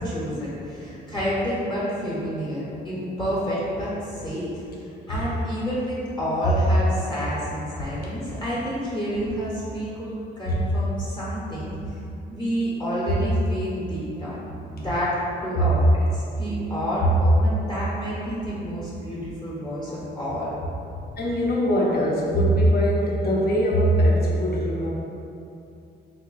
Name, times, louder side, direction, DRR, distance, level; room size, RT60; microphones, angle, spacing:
voice 1, 0.0-4.6 5.1-12.0 12.3-14.4 14.7-15.2 15.4-20.5, equal, 20° left, -9 dB, 0.9 m, -29 dB
voice 2, 21.2-24.9, equal, 50° left, -3 dB, 0.7 m, -21 dB
2.9 x 2.1 x 3.9 m, 2.7 s
cardioid pair, 90°, 20 cm